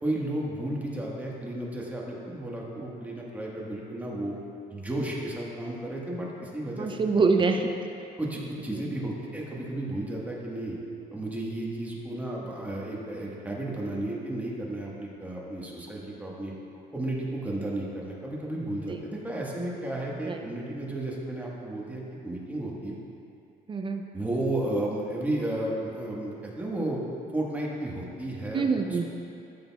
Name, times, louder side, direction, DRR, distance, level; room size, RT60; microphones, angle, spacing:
voice 1, 0.0-4.3 4.7-6.9 8.2-10.8 11.1-16.5 16.9-22.9 24.1-27.0 27.3-29.1, right 1 dB, 10° right, -4 dB, 1.4 m, -33 dB
voice 2, 6.8-7.7 20.3-20.4 23.7-24.0 28.5-29.1, right 4 dB, 30° right, 5 dB, 0.5 m, -24 dB
13.5 x 6.7 x 2.3 m, 2.6 s
cardioid pair, 110°, 17 cm